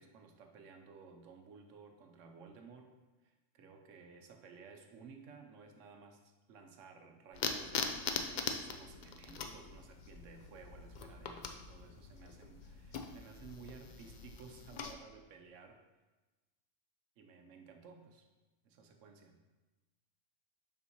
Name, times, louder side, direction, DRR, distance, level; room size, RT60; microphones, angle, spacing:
voice 1, 0.0-2.9 3.2-15.8 17.2-18.2 18.6-19.4, right 5 dB, 75° right, 4 dB, 1.1 m, -56 dB
sound 1, 7.3-14.9, left 5 dB, 65° left, 0.4 m, -42 dB
6.9 x 5.5 x 2.9 m, 1.2 s
omnidirectional pair, 1.3 m